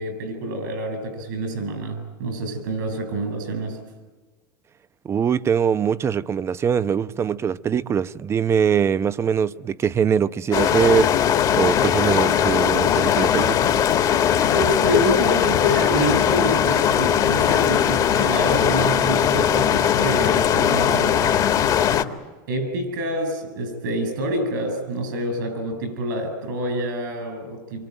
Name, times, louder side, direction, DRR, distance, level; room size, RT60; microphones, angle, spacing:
voice 1, 0.0-3.8 14.5-21.3 22.5-27.9, right 1 dB, 80° right, 7.6 m, -27 dB
voice 2, 5.0-11.1 11.5-13.7, right 7 dB, 25° right, 0.8 m, -22 dB
sound 1, 10.5-22.0, left 9 dB, 40° left, 2.0 m, -19 dB
26.5 x 24.0 x 9.1 m
supercardioid pair, 115°, 10 cm